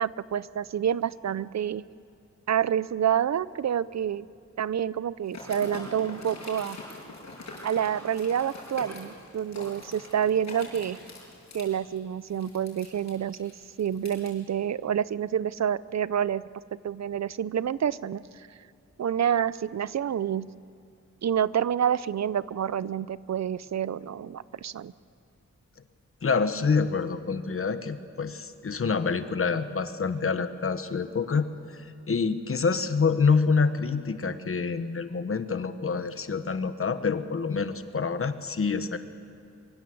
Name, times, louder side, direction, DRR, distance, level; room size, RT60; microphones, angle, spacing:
voice 1, 0.0-1.8 2.5-4.3 4.6-6.8 7.6-11.0 11.5-13.5 13.8-16.4 16.8-18.5 19.0-20.5 21.2-24.9, right 9 dB, 65° right, 18 dB, 0.6 m, -28 dB
sound 1, 5.3-14.3, left 2 dB, 65° left, 6.7 m, -43 dB
voice 2, 26.2-39.0, left 5 dB, 50° left, 10 dB, 1.2 m, -27 dB
24.0 x 24.0 x 7.8 m, 2.4 s
wide cardioid pair, 155°, 29 cm